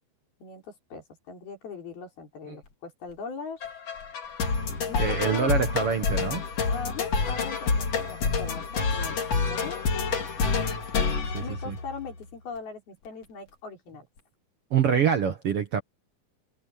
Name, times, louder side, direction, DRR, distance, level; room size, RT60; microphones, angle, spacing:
voice 1, 0.4-3.7 4.9-5.5 6.7-10.1 11.4-14.1, left 5 dB, 80° left, 6.9 m, -40 dB
sound 1, 3.6-12.2, left 4 dB, 45° left, 3.5 m, -28 dB
voice 2, 5.0-6.4 11.3-11.8 14.7-15.8, right 7 dB, 60° right, 1.6 m, -25 dB
omnidirectional pair, 4.3 m